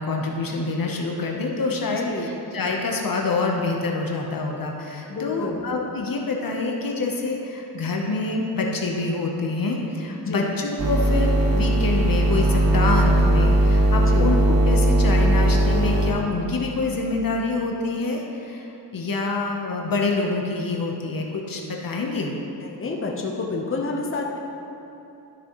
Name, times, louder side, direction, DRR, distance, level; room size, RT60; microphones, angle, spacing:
voice 1, 0.0-18.7 18.9-22.3, left 3 dB, 55° left, 0 dB, 1.0 m, -26 dB
voice 2, 1.9-2.4 5.1-5.7 10.2-10.5 14.0-14.3 22.6-24.4, left 3 dB, 30° left, 0 dB, 1.0 m, -29 dB
sound 1, 10.8-16.1, right 1 dB, 55° right, 1.0 m, -18 dB
12.5 x 6.1 x 3.1 m, 2.9 s
cardioid pair, 80°, 41 cm